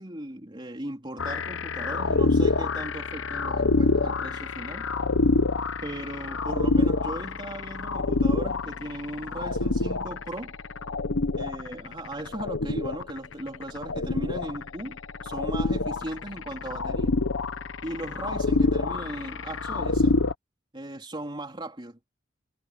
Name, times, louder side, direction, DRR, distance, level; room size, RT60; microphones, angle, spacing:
voice 1, 0.0-4.9 5.8-10.5 11.3-17.2 17.8-20.2 20.7-22.1, right 1 dB, 25° right, 3.3 m, -37 dB
sound 1, 1.2-20.3, left 3 dB, 90° left, 0.9 m, -27 dB
head